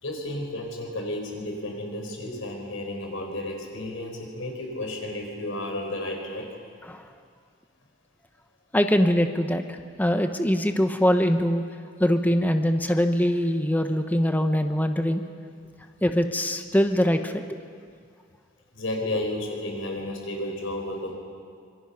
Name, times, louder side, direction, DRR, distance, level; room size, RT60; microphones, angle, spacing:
voice 1, 0.0-6.5 18.7-21.1, left 1 dB, 85° left, 2 dB, 4.7 m, -32 dB
voice 2, 8.7-11.6 12.0-15.2 16.0-17.4, equal, 10° left, 7 dB, 1.0 m, -23 dB
25.5 x 23.0 x 5.9 m, 2.1 s
head